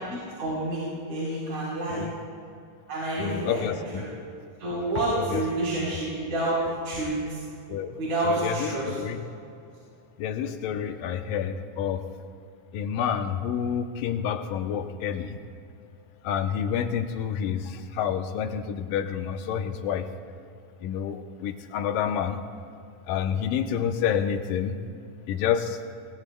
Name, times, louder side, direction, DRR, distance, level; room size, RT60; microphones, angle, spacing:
voice 1, 0.1-0.8 1.1-2.0 2.9-3.6 3.9-4.0 4.6-6.6 6.8-7.4 8.0-8.9, right 2 dB, 50° right, -8 dB, 5.3 m, -28 dB
voice 2, 3.2-4.0 5.0-5.4 7.7-9.2 10.2-12.0 12.7-15.4 16.2-20.1 20.8-22.4 23.1-24.8 25.3-25.8, left 8 dB, 80° left, 7 dB, 2.4 m, -29 dB
28.5 x 21.5 x 2.3 m, 2.5 s
omnidirectional pair, 3.9 m